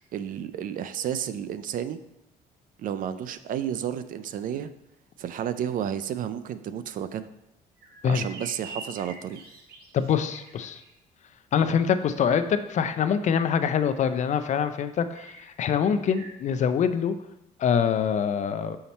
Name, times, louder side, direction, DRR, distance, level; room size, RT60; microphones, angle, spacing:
voice 1, 0.0-2.0 2.8-4.7 5.2-7.3 8.0-9.4, right 9 dB, 55° right, 13 dB, 0.4 m, -31 dB
sound 1, 7.8-10.9 15.1-16.3, right 3 dB, 70° right, 1.2 m, -45 dB
voice 2, 9.9-10.8 11.5-17.1 17.6-18.8, left 7 dB, 45° left, 10 dB, 0.4 m, -24 dB
5.7 x 4.1 x 4.3 m, 0.89 s
cardioid pair, 110°, 17 cm